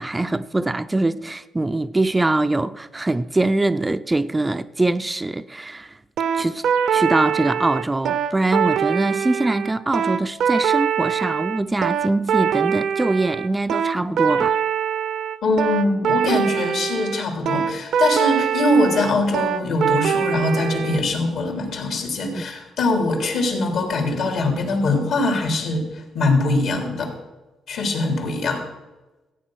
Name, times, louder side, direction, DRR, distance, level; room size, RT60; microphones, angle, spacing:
voice 1, 0.0-6.0 6.3-6.6 6.9-14.6 22.3-22.5, right 2 dB, 15° right, 0.5 m, -23 dB
sound 1, 6.2-21.0, right 8 dB, 70° right, 0.8 m, -23 dB
voice 2, 15.4-27.1 27.7-28.6, left 2 dB, 70° left, 3.4 m, -22 dB
14.5 x 8.7 x 6.3 m
cardioid pair, 90°, 0 cm